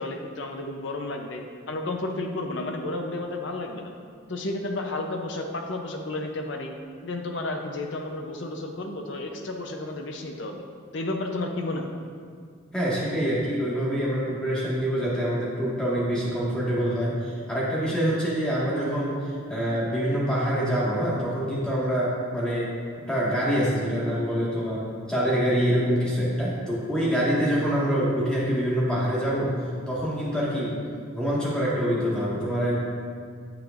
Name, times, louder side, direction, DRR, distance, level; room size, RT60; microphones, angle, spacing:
voice 1, 0.0-3.9 4.3-6.7 7.0-10.6 10.9-12.0, left 2 dB, 60° left, 3 dB, 0.7 m, -32 dB
voice 2, 12.7-22.7 23.1-29.5 29.9-30.8 31.1-32.8, equal, 5° left, -8 dB, 1.7 m, -25 dB
8.8 x 7.4 x 2.6 m, 2.1 s
head